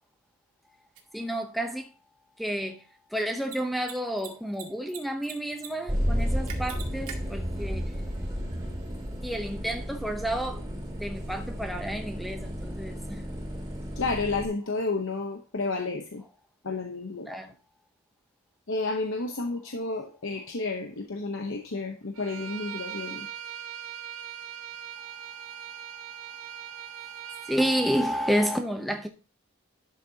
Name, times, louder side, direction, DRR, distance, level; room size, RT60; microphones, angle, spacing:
Mechanisms, 0.9-1.0 3.4-3.6 3.8-3.9 4.2-5.0 5.2-5.7 5.9-6.0 6.5-7.1, right 9 dB, 90° right, 2.0 m, -40 dB
voice 1, 1.1-1.9 2.4-2.8 3.1-7.9 9.2-10.6 11.0-12.9 17.3-17.5 27.5-29.1, equal, ahead, 0.7 m, -30 dB
sound 1, 5.9-14.5, equal, 15° right, 2.5 m, -33 dB
voice 2, 14.0-16.2 16.6-17.3 18.7-23.3, left 3 dB, 60° left, 0.9 m, -31 dB
Bowed string instrument, 22.1-27.6, right 9 dB, 65° right, 0.6 m, -40 dB
11.5 x 6.6 x 2.8 m
head